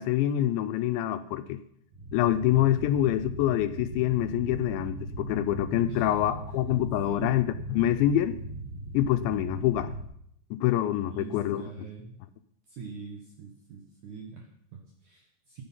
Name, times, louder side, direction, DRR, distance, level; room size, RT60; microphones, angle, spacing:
voice 1, 0.0-1.6 2.1-8.4 8.9-9.9 10.5-11.7, left 12 dB, 80° left, 10 dB, 2.8 m, -26 dB
sound 1, 1.9-10.0, right 2 dB, 45° right, 2.4 m, -38 dB
voice 2, 5.9-6.2 7.1-7.3 11.1-12.2 12.7-15.6, right 6 dB, 65° right, 1 dB, 2.0 m, -43 dB
14.0 x 9.8 x 5.5 m, 0.71 s
omnidirectional pair, 5.3 m